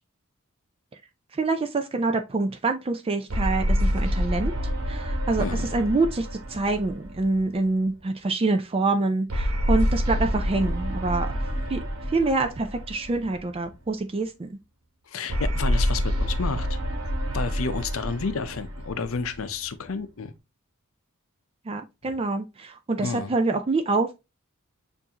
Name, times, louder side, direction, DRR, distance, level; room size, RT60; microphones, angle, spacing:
voice 1, 1.3-4.5 4.9-5.4 5.7-11.3 11.7-11.8 12.1-14.6 21.7-24.1, right 3 dB, 25° right, 0.4 m, -26 dB
sound 1, 3.3-7.9 9.3-13.7 15.3-19.9, equal, 90° right, 1.1 m, -27 dB
voice 2, 5.4-5.7 11.6-11.7 15.1-16.8 17.3-20.3 23.0-23.3, left 4 dB, 70° left, 0.6 m, -31 dB
6.9 x 2.7 x 2.8 m
head